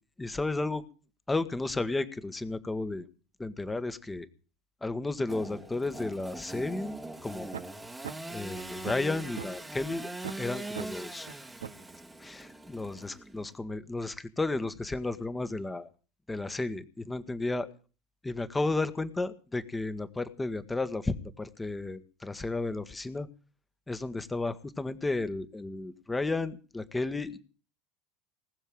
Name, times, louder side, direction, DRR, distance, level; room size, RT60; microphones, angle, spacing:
voice 1, 0.2-0.8 1.3-3.0 3.4-4.3 4.8-6.9 7.2-7.5 8.0-10.1 10.4-11.3 12.2-15.9 16.3-17.7 18.2-23.3 23.9-27.4, left 2 dB, 10° left, 12 dB, 1.5 m, -33 dB
Engine / Sawing, 5.3-13.5, right 2 dB, 10° right, 1.5 m, -42 dB
sound 1, 7.5-7.6 8.0-8.1 8.6-9.5 9.9-10.0 10.2-10.4 10.7-10.9 11.3-11.4 11.6-11.8, right 9 dB, 75° right, 0.7 m, -39 dB
19.5 x 7.2 x 9.0 m, 0.37 s
figure-of-eight pair, 75°, 0 cm